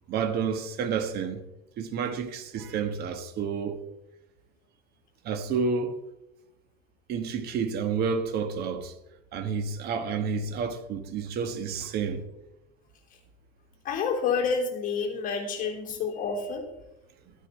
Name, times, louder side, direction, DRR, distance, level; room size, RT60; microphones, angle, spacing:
voice 1, 0.1-1.4 1.8-3.8 5.2-6.0 7.1-8.9 9.3-12.2, right 5 dB, 50° right, 1.3 m, -30 dB
voice 2, 13.8-16.6, left 5 dB, 40° left, 3.2 m, -28 dB
13.5 x 9.6 x 4.2 m
cardioid pair, 145°, 20 cm